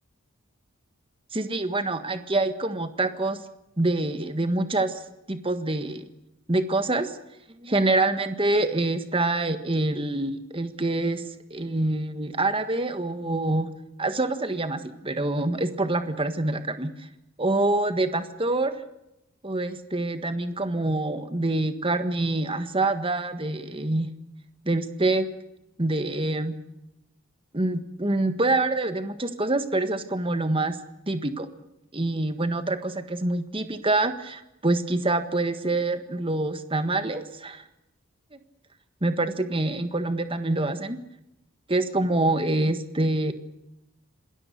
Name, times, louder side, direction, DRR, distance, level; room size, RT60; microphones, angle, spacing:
voice 1, 1.3-3.4 3.8-5.0 5.3-6.0 6.5-7.1 7.6-11.2 11.5-13.7 14.0-16.9 17.4-18.7 19.4-24.1 24.6-25.3 25.8-26.6 27.5-30.8 31.1-31.5 31.9-37.6 39.0-41.0 41.7-43.3, right 2 dB, 25° right, 9 dB, 1.6 m, -26 dB
27.0 x 20.0 x 6.7 m, 0.87 s
head